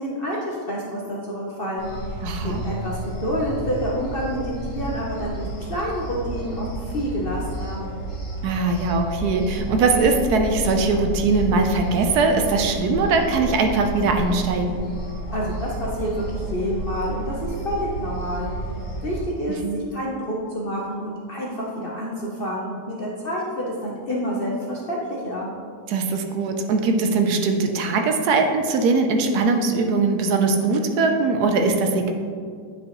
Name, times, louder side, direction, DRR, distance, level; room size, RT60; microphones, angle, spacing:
voice 1, 0.0-1.9 2.4-7.8 15.3-18.5 19.0-25.5, equal, 50° left, -3 dB, 0.7 m, -28 dB
sound 1, 1.8-19.2, right 1 dB, 80° left, 2.6 m, -31 dB
voice 2, 2.2-2.6 8.4-14.8 19.6-19.8 25.9-32.1, right 3 dB, 75° right, 4 dB, 1.1 m, -21 dB
9.0 x 5.3 x 3.0 m, 2.1 s
omnidirectional pair, 1.8 m